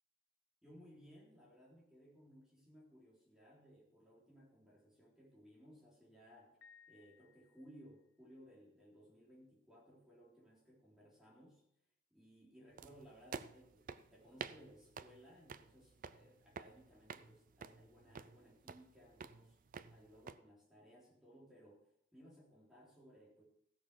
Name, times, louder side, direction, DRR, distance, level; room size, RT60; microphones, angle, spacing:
voice 1, 0.6-6.6 6.9-11.6 12.1-19.6 19.9-23.4, equal, ahead, -5 dB, 3.6 m, -61 dB
Piano, 6.6-8.1, left 7 dB, 60° left, 0.6 m, -65 dB
sound 1, 12.8-20.4, right 5 dB, 40° right, 0.5 m, -51 dB
16.0 x 6.9 x 6.0 m, 0.74 s
head